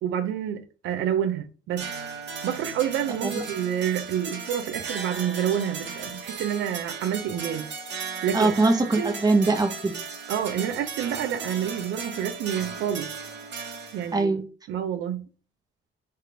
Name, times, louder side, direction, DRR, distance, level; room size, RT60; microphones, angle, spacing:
voice 1, 0.0-1.9 2.4-7.7 8.2-8.5 9.0-9.1 10.3-13.1 13.9-14.4 14.7-15.3, right 9 dB, 80° right, 0.5 m, -28 dB
sound 1, 1.8-14.2, right 5 dB, 65° right, 1.1 m, -36 dB
voice 2, 8.3-10.0 14.1-14.5, right 3 dB, 20° right, 0.8 m, -22 dB
3.4 x 2.4 x 4.4 m
cardioid pair, 90°, 20 cm